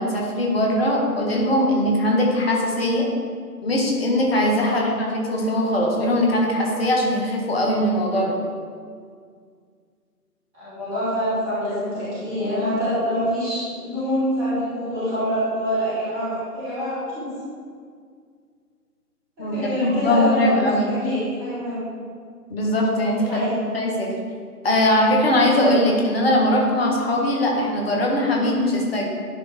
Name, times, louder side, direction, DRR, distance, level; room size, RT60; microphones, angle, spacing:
voice 1, 0.0-3.1 3.6-8.3 19.4-20.9 22.5-23.5 23.7-24.1 24.6-29.1, left 1 dB, 40° left, -2 dB, 1.7 m, -21 dB
voice 2, 10.5-17.3 19.4-20.6 21.0-21.8 23.2-23.6, equal, 10° right, -12 dB, 1.4 m, -26 dB
11.5 x 3.9 x 5.1 m, 2.1 s
figure-of-eight pair, 150°, 48 cm